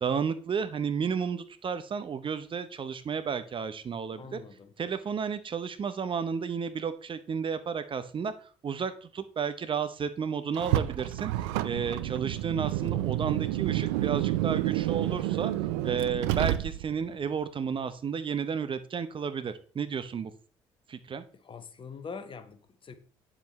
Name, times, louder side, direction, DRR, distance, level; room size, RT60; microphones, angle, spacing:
voice 1, 0.0-4.4 4.8-11.3 11.6-15.5 15.8-20.3 20.9-21.2, right 6 dB, 35° right, 11 dB, 0.8 m, -32 dB
voice 2, 4.2-4.7 21.4-23.0, left 5 dB, 35° left, 10 dB, 1.2 m, -43 dB
Car, 10.5-17.1, right 15 dB, 70° right, 0.5 m, -29 dB
9.1 x 7.4 x 3.2 m, 0.42 s
figure-of-eight pair, 55°, 15 cm